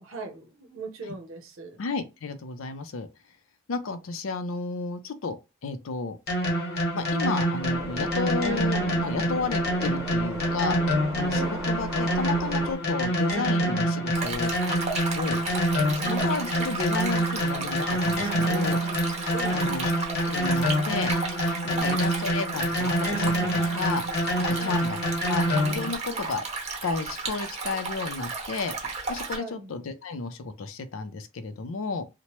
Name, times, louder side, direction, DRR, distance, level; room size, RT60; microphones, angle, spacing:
voice 1, 0.0-1.8 11.3-11.5 16.0-16.2 19.3-20.0 21.7-21.9 24.6-24.8 26.1-26.2 29.3-29.7, right 3 dB, 70° right, 0.7 m, -39 dB
voice 2, 1.8-3.1 3.7-5.4 5.6-6.2 6.9-10.8 11.2-14.5 15.1-15.4 16.1-18.8 19.5-19.9 20.3-21.1 21.6-24.0 24.6-25.0 25.3-26.4 26.8-28.7 29.1-32.0, left 4 dB, 70° left, 0.5 m, -32 dB
sound 1, 6.3-25.9, equal, 50° left, 1.1 m, -26 dB
sound 2, 7.6-12.8, right 1 dB, 15° right, 1.0 m, -38 dB
Stream, 14.1-29.4, right 3 dB, 35° right, 0.8 m, -34 dB
2.9 x 2.1 x 3.0 m
head